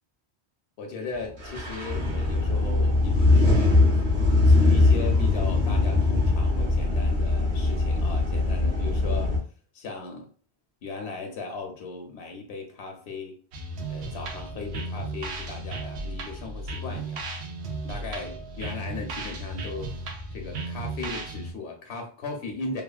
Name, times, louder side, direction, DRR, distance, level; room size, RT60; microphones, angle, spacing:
voice 1, 0.8-3.7 4.4-9.4 9.7-10.3 10.8-13.4 13.9-17.2 17.8-19.9 20.3-22.8, left 4 dB, 80° left, 3 dB, 0.8 m, -37 dB
sound 1, 1.4-9.4, left 2 dB, 50° right, 1.1 m, -21 dB
sound 2, 13.5-21.5, right 2 dB, 85° right, 0.9 m, -35 dB
2.8 x 2.2 x 2.3 m, 0.41 s
omnidirectional pair, 1.1 m